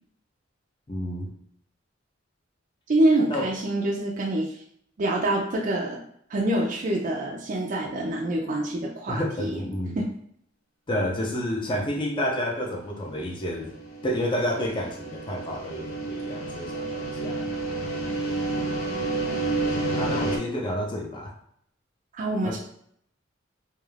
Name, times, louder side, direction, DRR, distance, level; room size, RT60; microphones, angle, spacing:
voice 1, 0.9-1.3 3.3-3.5 9.1-10.0 10.9-13.7 14.0-17.4 20.0-21.3 22.4-22.6, equal, 25° left, -2 dB, 0.5 m, -29 dB
voice 2, 2.9-4.5 5.0-6.0 6.3-9.6 10.0-10.1 22.1-22.6, right 1 dB, 40° right, -2 dB, 0.4 m, -25 dB
sound 1, 13.6-20.4, right 2 dB, 85° left, 0.6 m, -30 dB
2.3 x 2.2 x 3.2 m, 0.68 s
head